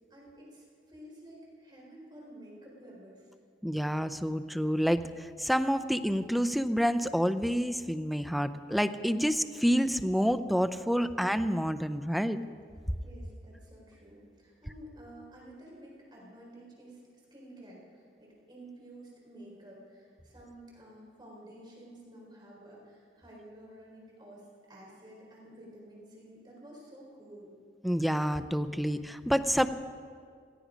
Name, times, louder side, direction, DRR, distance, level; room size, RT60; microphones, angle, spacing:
voice 1, 0.1-3.3 13.0-27.5, right 1 dB, 25° right, -3 dB, 4.1 m, -51 dB
voice 2, 3.6-12.4 27.8-29.7, equal, ahead, 11 dB, 0.5 m, -28 dB
17.5 x 15.5 x 5.1 m, 2.1 s
head